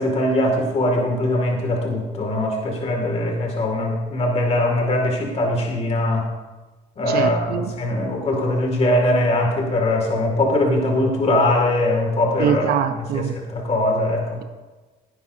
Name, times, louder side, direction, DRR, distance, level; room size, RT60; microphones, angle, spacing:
voice 1, 0.0-6.3 7.0-12.8 13.1-14.4, left 1 dB, 40° left, 2.2 m, -21 dB
voice 2, 7.1-7.8 12.4-13.4, right 9 dB, 70° right, 0.7 m, -23 dB
17.0 x 10.0 x 2.7 m
cardioid pair, 110°, 17 cm